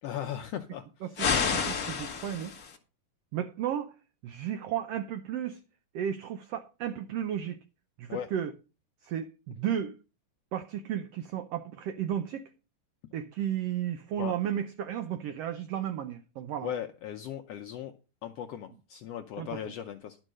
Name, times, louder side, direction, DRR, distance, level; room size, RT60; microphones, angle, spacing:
voice 1, 0.0-1.1 8.1-8.3 14.2-14.4 16.6-17.9 18.2-20.2, left 10 dB, 80° left, 1.4 m, -37 dB
voice 2, 1.0-2.5 3.3-3.9 4.2-5.6 5.9-7.6 8.0-8.5 9.0-10.0 10.5-12.5 13.1-16.7 19.4-19.6, right 10 dB, 85° right, 1.3 m, -33 dB
sound 1, 1.2-2.8, left 6 dB, 65° left, 0.8 m, -29 dB
11.5 x 5.4 x 6.3 m
omnidirectional pair, 3.6 m